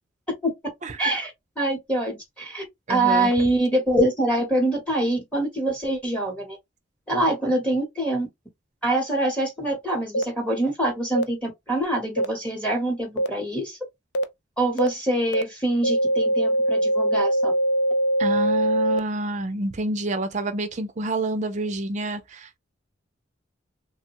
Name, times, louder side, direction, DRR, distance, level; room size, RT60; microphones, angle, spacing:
voice 1, 1.0-1.3 1.6-6.6 7.1-8.3 8.8-13.8 14.6-17.5, right 1 dB, 5° left, 0.9 m, -24 dB
voice 2, 2.9-3.3 18.2-22.6, right 2 dB, 40° right, 0.5 m, -28 dB
sound 1, 10.1-10.2 11.1-11.2 12.2-12.3 13.2-13.3 14.1-14.2 14.8-14.9 15.3-15.4 15.8-19.0, right 1 dB, 60° left, 0.4 m, -22 dB
3.1 x 2.1 x 2.9 m
head